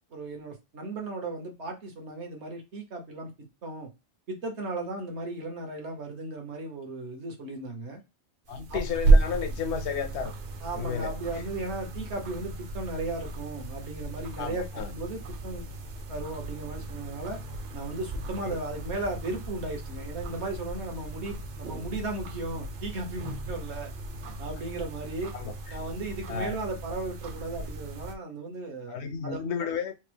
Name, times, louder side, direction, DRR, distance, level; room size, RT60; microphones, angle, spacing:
voice 1, 0.1-3.3 3.6-3.9 4.3-8.0 8.7-8.8 10.6-15.7 16.1-17.4 17.7-23.9 24.4-25.3 25.7-29.4, right 2 dB, 75° right, 1.4 m, -36 dB
voice 2, 8.5-10.3 10.7-11.1 14.4-14.9 18.4-18.6 25.3-25.8 26.3-26.6 28.9-29.9, left 6 dB, 80° left, 0.9 m, -32 dB
sound 1, 8.5-28.1, right 3 dB, 55° right, 0.6 m, -32 dB
4.3 x 2.0 x 3.3 m
omnidirectional pair, 1.1 m